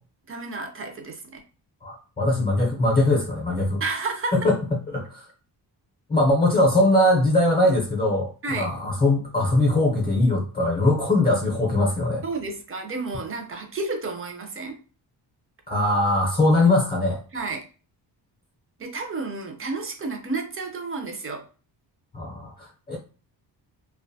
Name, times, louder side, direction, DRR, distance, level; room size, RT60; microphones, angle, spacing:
voice 1, 0.3-1.4 3.8-4.4 8.4-8.7 12.2-14.8 17.3-17.7 18.8-21.5, right 3 dB, 30° right, 3 dB, 0.5 m, -31 dB
voice 2, 1.8-3.8 4.4-4.6 4.9-5.2 6.1-12.2 15.7-17.2 22.1-23.0, left 1 dB, 25° left, 0 dB, 0.5 m, -21 dB
2.5 x 2.2 x 2.6 m, 0.36 s
wide cardioid pair, 150°, 42 cm